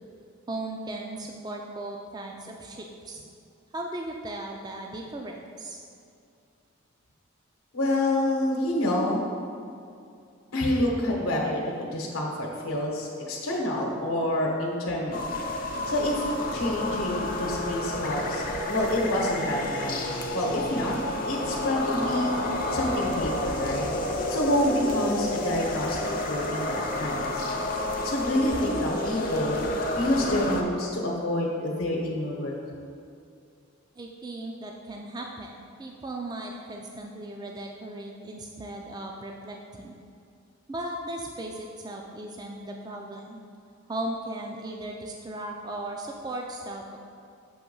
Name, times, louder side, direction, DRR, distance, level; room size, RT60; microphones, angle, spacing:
voice 1, 0.5-3.2 3.7-5.8 34.0-40.0 40.7-43.4 43.9-47.0, right 1 dB, 20° right, 1 dB, 0.3 m, -37 dB
voice 2, 7.7-9.3 10.5-15.4 15.9-16.2 16.5-21.0 21.3-22.3 22.7-23.9 24.3-26.0 26.3-27.4 28.0-29.6 30.0-32.6, left 1 dB, 90° left, -1 dB, 0.9 m, -28 dB
sound 1, 15.1-30.6, left 1 dB, 40° left, 0.5 m, -30 dB
7.1 x 3.0 x 5.3 m, 2.5 s
head